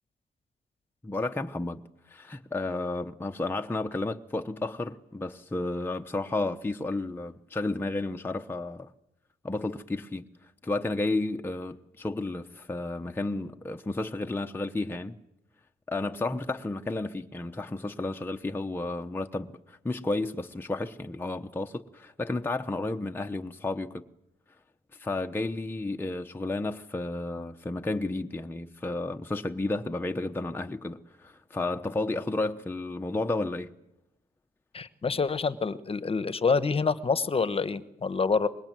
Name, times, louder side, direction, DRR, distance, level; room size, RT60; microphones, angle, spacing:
voice 1, 1.0-1.8 2.1-8.9 9.4-15.2 15.9-24.0 24.9-33.7, left 2 dB, 15° left, 0.9 m, -32 dB
voice 2, 34.7-38.5, left 4 dB, 35° left, 1.2 m, -27 dB
24.5 x 21.0 x 9.2 m
cardioid pair, 120°, 17 cm